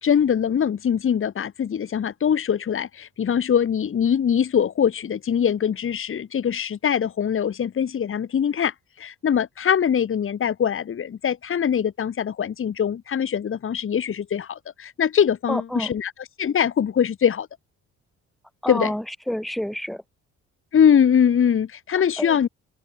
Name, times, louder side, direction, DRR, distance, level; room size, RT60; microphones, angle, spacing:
voice 1, 0.0-17.5 18.7-18.9 20.7-22.5, left 8 dB, 45° left, 1.4 m, -22 dB
voice 2, 15.5-15.9 18.6-20.0 22.2-22.5, equal, ahead, 0.8 m, -29 dB
open air
cardioid pair, 90°, 30 cm